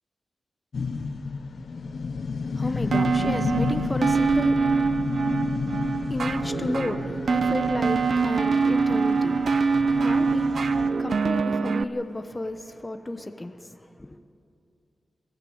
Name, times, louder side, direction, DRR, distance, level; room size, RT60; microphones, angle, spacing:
sound 1, 0.7-10.9, left 4 dB, 65° left, 1.0 m, -32 dB
voice 1, 2.4-14.2, left 1 dB, 20° left, 1.0 m, -33 dB
sound 2, 2.9-11.8, right 4 dB, 70° right, 0.6 m, -24 dB
21.5 x 14.5 x 8.8 m
wide cardioid pair, 80°, 0 cm